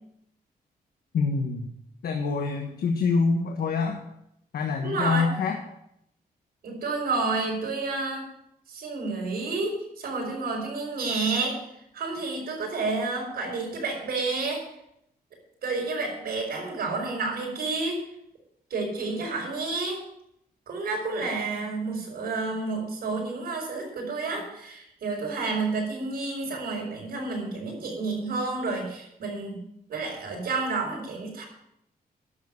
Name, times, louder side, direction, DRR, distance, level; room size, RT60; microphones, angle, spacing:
voice 1, 1.1-1.7 2.0-4.0 4.5-5.6, left 4 dB, 75° left, 3 dB, 1.4 m, -25 dB
voice 2, 4.8-5.3 6.6-8.3 8.7-11.6 11.9-14.6 15.6-18.0 18.7-20.0 20.7-29.6 29.9-31.5, right 3 dB, 75° right, -1 dB, 5.5 m, -30 dB
11.5 x 7.6 x 7.0 m, 0.77 s
wide cardioid pair, 140°, 16 cm